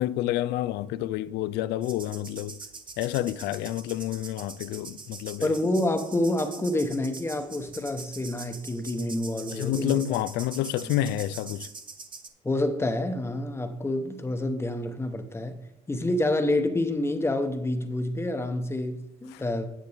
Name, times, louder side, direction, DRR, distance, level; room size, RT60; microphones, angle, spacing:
voice 1, 0.0-2.5 3.0-5.5 9.5-11.7 19.3-19.4, left 13 dB, 85° left, 0.4 m, -29 dB
sound 1, 1.8-12.3, right 4 dB, 30° right, 0.9 m, -44 dB
voice 2, 5.4-10.1 12.4-15.6 15.9-19.7, left 1 dB, 15° left, 0.9 m, -28 dB
9.5 x 7.5 x 3.4 m
cardioid pair, 110°, 17 cm